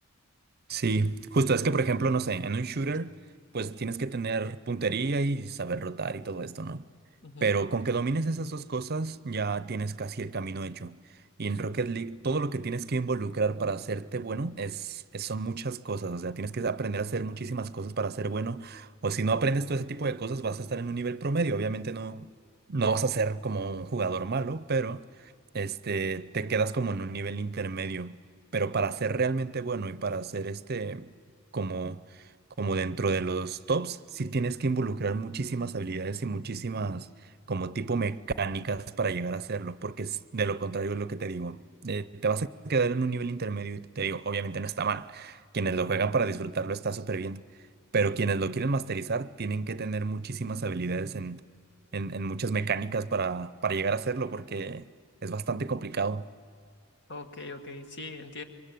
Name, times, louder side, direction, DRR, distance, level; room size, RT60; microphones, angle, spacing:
voice 1, 0.7-3.2 3.5-6.9 7.4-11.0 11.4-22.3 22.7-28.2 28.5-31.1 31.5-32.2 32.6-37.1 37.5-47.4 47.9-51.4 51.9-54.8 55.2-56.3, right 4 dB, 50° right, 0.7 m, -30 dB
voice 2, 7.2-7.5 57.1-58.4, left 3 dB, 55° left, 2.1 m, -41 dB
26.5 x 23.5 x 9.3 m
head